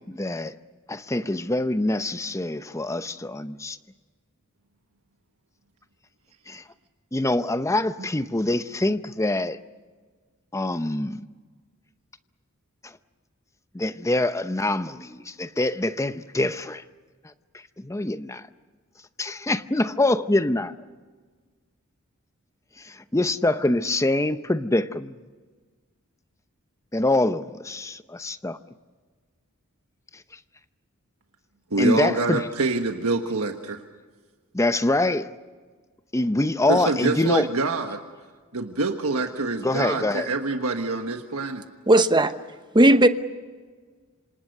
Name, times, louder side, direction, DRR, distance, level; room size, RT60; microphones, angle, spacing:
voice 1, 0.1-0.5 0.9-3.8 6.5-6.6 7.1-9.6 10.5-11.2 12.8-12.9 13.7-16.8 17.8-18.4 19.2-20.7 22.8-25.1 26.9-28.6 31.8-32.5 34.5-35.3 36.1-37.5 39.6-40.3, left 2 dB, 15° left, 0.7 m, -25 dB
voice 2, 31.7-33.8 36.7-38.0 38.5-41.6, right 3 dB, 80° right, 1.4 m, -26 dB
voice 3, 41.9-42.3 42.7-43.1, right 1 dB, 20° right, 1.0 m, -15 dB
27.5 x 26.5 x 6.7 m
head